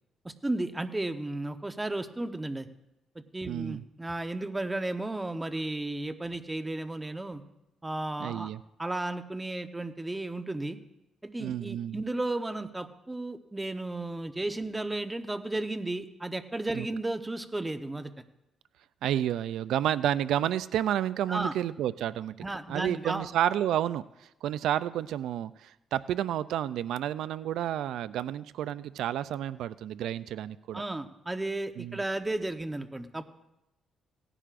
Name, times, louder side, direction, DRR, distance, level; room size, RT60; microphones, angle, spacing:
voice 1, 0.2-2.7 3.1-7.4 7.8-8.5 8.8-10.8 11.2-18.1 21.3-21.5 22.4-23.3 30.7-33.3, right 2 dB, 15° right, 8 dB, 1.0 m, -34 dB
voice 2, 3.5-3.8 8.2-8.6 11.4-12.0 16.7-16.8 19.0-22.3 22.7-30.8 31.8-32.0, right 11 dB, 80° right, 15 dB, 0.3 m, -30 dB
18.0 x 15.0 x 2.5 m, 0.89 s
cardioid pair, 90°, 0 cm